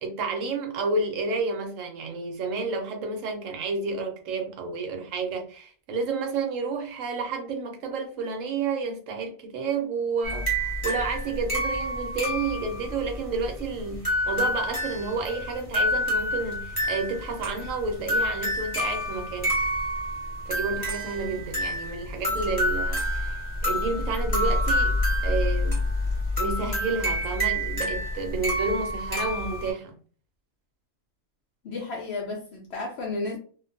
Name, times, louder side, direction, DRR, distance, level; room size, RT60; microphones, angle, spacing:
voice 1, 0.0-19.5 20.5-25.0 25.2-25.8 26.4-30.0, right 4 dB, 70° right, 0.9 m, -30 dB
sound 1, 10.2-29.7, left 1 dB, 20° left, 0.9 m, -28 dB
voice 2, 31.6-33.4, left 3 dB, 65° left, 0.7 m, -32 dB
2.4 x 2.2 x 2.5 m
omnidirectional pair, 1.5 m